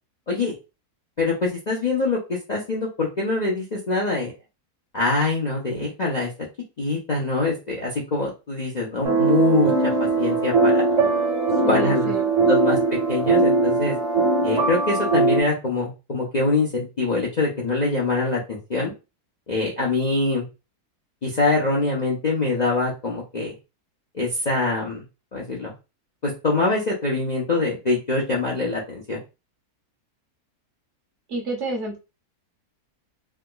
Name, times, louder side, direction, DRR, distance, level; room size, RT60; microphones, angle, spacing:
voice 1, 1.2-4.3 4.9-6.3 6.8-9.7 10.2-10.8 11.7-12.1 12.5-12.8 13.1-13.9 14.4-18.9 19.5-20.5 21.2-23.5 24.1-25.0 25.3-25.7 26.2-29.2, left 3 dB, 45° left, -3 dB, 0.6 m, -24 dB
sound 1, 9.0-15.4, right 3 dB, 30° right, 1.1 m, -20 dB
voice 2, 11.6-12.5 31.3-32.0, equal, 55° right, 0 dB, 1.2 m, -29 dB
3.4 x 2.9 x 2.2 m, 0.28 s
omnidirectional pair, 1.6 m